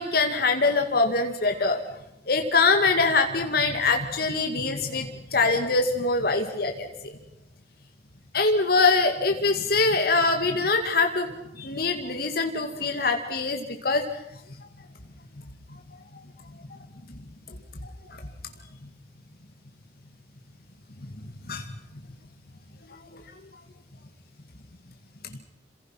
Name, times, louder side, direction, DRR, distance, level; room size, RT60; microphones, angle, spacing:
voice 1, 0.0-1.8 2.3-7.2 8.3-14.0 16.7-16.8 17.8-18.2 21.2-21.7 23.1-23.2 25.3-25.4, left 3 dB, 60° left, 5 dB, 2.3 m, -24 dB
28.5 x 26.5 x 5.9 m, 0.87 s
head